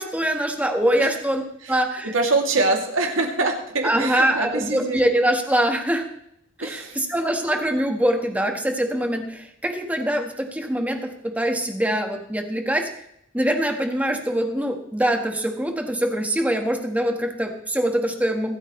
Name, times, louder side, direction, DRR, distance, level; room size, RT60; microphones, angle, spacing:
voice 1, 0.0-1.4 1.7-2.1 3.8-6.1 6.6-12.9 13.3-18.6, right 1 dB, 10° right, 4 dB, 1.5 m, -23 dB
voice 2, 2.1-5.0 6.6-7.0, right 3 dB, 90° right, 1 dB, 2.7 m, -24 dB
25.0 x 8.7 x 3.2 m, 0.75 s
head